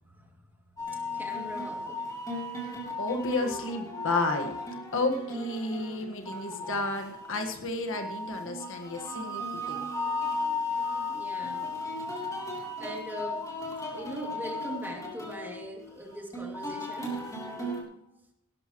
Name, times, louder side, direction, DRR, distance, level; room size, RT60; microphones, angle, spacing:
voice 1, 0.0-0.3 0.9-2.0 11.1-11.7 12.8-17.2, right 1 dB, 10° right, 1 dB, 2.4 m, -41 dB
sound 1, 0.8-17.8, left 2 dB, 15° left, 3.2 m, -36 dB
voice 2, 3.0-4.5 4.9-9.9, left 2 dB, 60° left, 4 dB, 1.6 m, -32 dB
17.5 x 12.5 x 3.1 m, 0.81 s
head